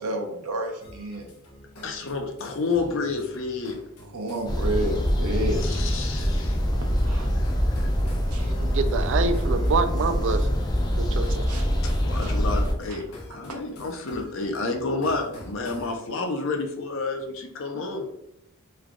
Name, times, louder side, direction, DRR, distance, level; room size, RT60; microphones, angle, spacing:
voice 1, 0.0-1.3 4.1-5.6 7.0-7.3 8.3-8.5 11.5-11.6 12.2-12.3 12.9-13.0, right 1 dB, 90° right, 2 dB, 0.8 m, -30 dB
sound 1, 0.8-16.0, left 1 dB, 85° left, 0.8 m, -46 dB
voice 2, 1.8-3.8 5.6-6.6 7.4-7.5 11.8-18.1, left 3 dB, 60° left, 4 dB, 0.6 m, -30 dB
sound 2, 4.5-12.7, equal, 20° left, 0.4 m, -24 dB
voice 3, 8.6-10.5 11.0-11.5, right 4 dB, 55° right, 10 dB, 0.3 m, -26 dB
3.2 x 2.3 x 3.6 m, 0.76 s
head